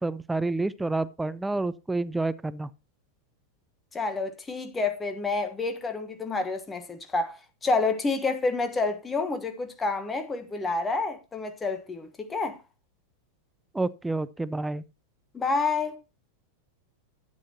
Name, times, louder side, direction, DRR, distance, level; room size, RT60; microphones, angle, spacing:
voice 1, 0.0-2.7 13.7-14.8, right 2 dB, 5° right, 0.5 m, -29 dB
voice 2, 3.9-12.6 15.3-16.0, left 3 dB, 15° left, 1.3 m, -29 dB
12.0 x 8.5 x 2.9 m
figure-of-eight pair, 90°, 0 cm